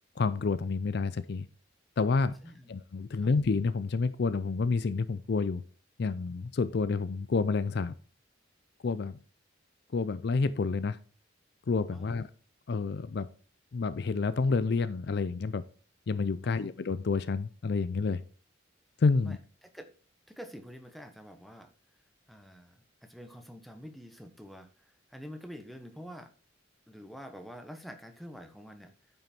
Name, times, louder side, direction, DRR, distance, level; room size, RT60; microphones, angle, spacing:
voice 1, 0.2-1.5 2.0-2.4 2.7-5.6 6.0-7.9 8.8-9.2 9.9-11.0 11.7-12.3 12.7-13.3 13.7-15.6 16.1-18.2 19.0-19.4, left 4 dB, 55° left, 0.4 m, -29 dB
voice 2, 2.4-2.7 3.2-3.3 11.9-12.1 16.4-16.7 19.2-19.4 19.7-19.9 20.3-21.7 22.3-26.3 26.9-28.9, equal, ahead, 1.0 m, -47 dB
9.1 x 5.7 x 4.4 m
head